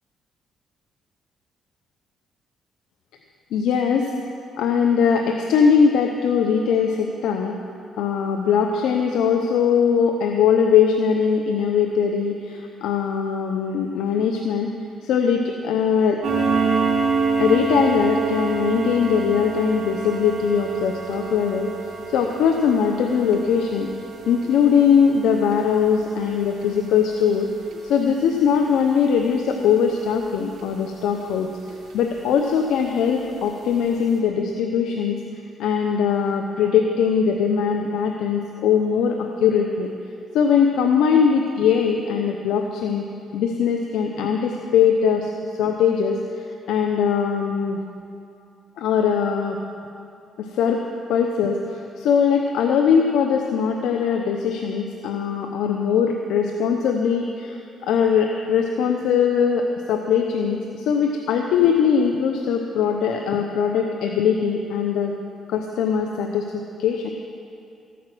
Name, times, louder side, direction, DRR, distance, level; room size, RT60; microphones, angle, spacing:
voice 1, 3.5-4.1 4.6-7.6 8.0-14.7 15.0-16.2 17.4-21.7 22.1-23.9 24.3-27.5 27.8-31.5 31.9-35.2 35.6-39.9 40.3-43.0 43.3-45.3 45.6-47.8 48.8-49.6 50.4-57.6 57.8-65.1 65.5-67.1, left 7 dB, 85° left, 3 dB, 0.8 m, -21 dB
sound 1, 16.2-31.3 31.7-31.9 32.4-32.5 32.9-33.0 33.5-33.6 33.9-34.0, right 4 dB, 65° right, 3.4 m, -28 dB
14.0 x 9.3 x 6.1 m, 2.5 s
cardioid pair, 90°, 0 cm